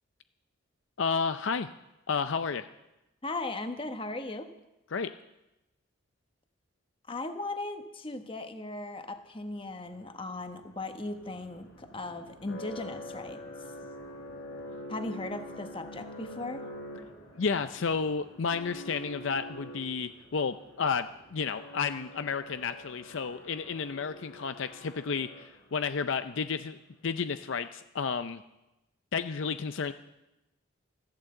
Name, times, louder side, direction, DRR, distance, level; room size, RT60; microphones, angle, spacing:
voice 1, 1.0-1.7 2.1-2.7 4.9-5.1 17.4-25.3 25.7-26.8 27.0-28.4 29.1-29.9, left 5 dB, 60° left, 10 dB, 0.5 m, -31 dB
voice 2, 3.2-4.5 7.1-13.4 14.9-16.7, left 2 dB, 25° left, 7 dB, 1.1 m, -37 dB
sound 1, 9.7-25.9, equal, 75° left, 4.8 m, -46 dB
14.5 x 11.5 x 7.7 m, 0.95 s
head